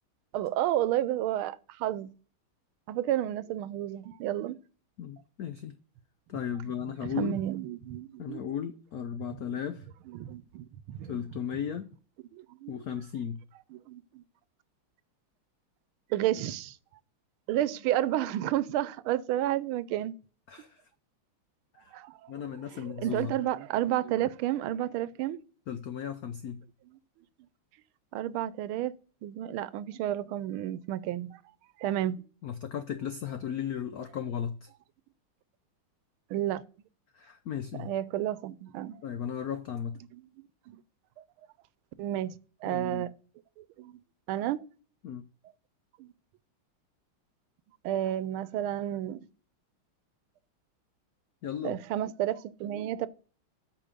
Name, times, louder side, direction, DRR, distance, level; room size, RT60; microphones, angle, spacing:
voice 1, 0.3-2.1 2.9-4.5 7.0-8.4 10.1-11.2 12.3-12.8 13.7-14.2 16.1-16.8 17.5-20.1 21.9-22.3 22.7-25.4 28.1-28.9 29.2-31.4 31.8-32.2 36.3-36.6 37.7-39.0 40.1-40.2 40.7-40.8 42.0-42.3 42.6-43.1 43.6-44.0 44.3-44.6 46.0-46.1 47.8-49.3 51.6-53.1, right 12 dB, 80° right, 1.5 m, -31 dB
voice 2, 5.0-5.8 6.3-7.4 8.2-9.9 11.1-11.9 12.7-13.4 20.5-20.8 21.8-21.9 22.3-23.3 25.7-26.6 32.4-34.7 37.1-37.9 39.0-40.0 42.7-43.1 45.0-45.2 51.4-51.8, left 8 dB, 85° left, 0.8 m, -36 dB
8.5 x 5.2 x 6.7 m
omnidirectional pair, 2.3 m